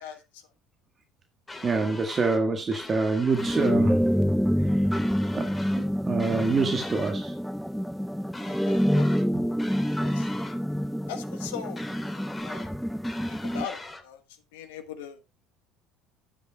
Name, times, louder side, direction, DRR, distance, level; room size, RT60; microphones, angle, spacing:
sound 1, 1.5-2.4 2.7-3.8 4.9-5.9 6.2-7.2 8.3-9.3 9.6-10.6 11.8-12.7 13.0-14.0, left 2 dB, 15° left, 2.7 m, -42 dB
voice 1, 1.6-4.0 4.6-4.8 5.4-7.3, right 4 dB, 30° right, 1.8 m, -26 dB
sound 2, 3.4-13.7, equal, ahead, 0.5 m, -27 dB
voice 2, 8.5-9.1 9.4-9.5 10.0-10.3 11.1-11.8 12.4-12.6 13.3-14.2 14.5-15.2, left 8 dB, 70° left, 1.4 m, -39 dB
13.5 x 9.4 x 2.3 m
figure-of-eight pair, 65°, 0 cm